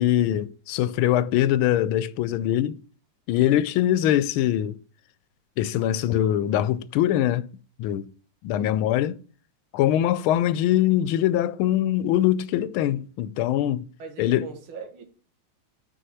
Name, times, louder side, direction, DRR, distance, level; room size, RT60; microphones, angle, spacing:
voice 1, 0.0-2.8 3.3-4.8 5.6-7.5 7.8-8.1 8.4-9.2 9.7-13.8 14.2-14.5, left 12 dB, 90° left, 1.4 m, -22 dB
voice 2, 14.0-15.0, right 5 dB, 90° right, 2.2 m, -39 dB
6.4 x 4.6 x 5.7 m
omnidirectional pair, 2.2 m